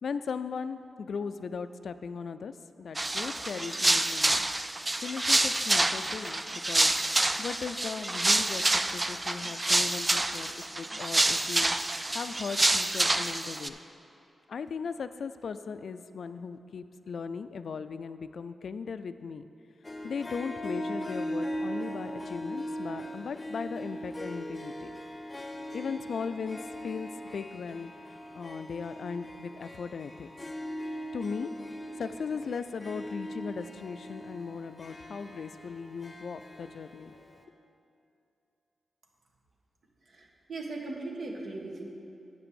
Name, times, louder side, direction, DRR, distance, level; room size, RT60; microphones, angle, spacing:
voice 1, 0.0-4.4 5.0-6.9 7.4-11.8 12.1-13.7 14.5-19.5 20.0-25.0 25.7-30.3 31.1-31.5 32.0-37.1, left 5 dB, 75° left, 11 dB, 0.3 m, -38 dB
sound 1, 3.0-13.7, right 2 dB, 25° right, 0.4 m, -27 dB
Harp, 19.8-37.4, equal, 25° left, 0.7 m, -40 dB
voice 2, 40.1-41.8, right 2 dB, 65° right, 0 dB, 1.3 m, -38 dB
7.5 x 6.0 x 6.9 m, 2.7 s
cardioid pair, 70°, 0 cm